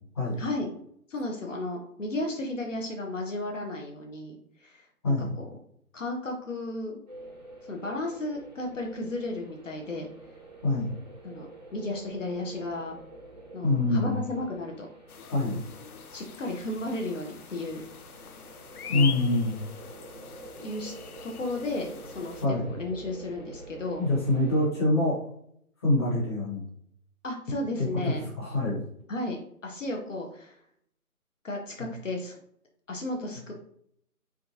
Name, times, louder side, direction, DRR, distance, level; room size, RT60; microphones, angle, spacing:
voice 1, 0.4-0.7 1.1-5.5 5.9-7.0 7.6-10.1 11.2-11.5 11.7-13.0 13.5-14.9 16.1-17.8 18.9-19.1 20.6-20.9 21.2-24.1 27.2-28.3 29.1-30.6 31.4-32.3 32.9-33.5, left 2 dB, 55° left, 1 dB, 0.8 m, -34 dB
voice 2, 5.0-5.3 10.6-10.9 13.6-14.2 15.3-15.6 18.9-19.6 22.4-22.7 24.0-25.2 25.8-26.6 27.8-28.8 31.8-31.9, left 2 dB, 20° left, -8 dB, 1.0 m, -25 dB
sound 1, 7.1-24.7, right 2 dB, 30° right, 0.6 m, -48 dB
sound 2, 15.1-22.5, left 8 dB, 80° left, 0.5 m, -42 dB
3.7 x 3.5 x 2.7 m, 0.68 s
figure-of-eight pair, 160°, 44 cm